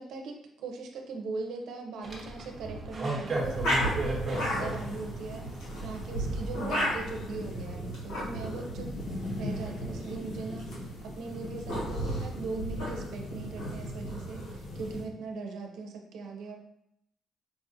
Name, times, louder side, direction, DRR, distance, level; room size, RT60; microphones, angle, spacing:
voice 1, 0.0-5.5 5.8-8.9 9.4-16.6, right 3 dB, 80° right, 2 dB, 0.6 m, -40 dB
sound 1, 2.0-7.2, right 2 dB, 35° right, 1.0 m, -36 dB
sound 2, 3.3-15.1, equal, 85° left, 1.5 m, -34 dB
4.7 x 2.4 x 2.7 m, 0.76 s
cardioid pair, 90°, 0 cm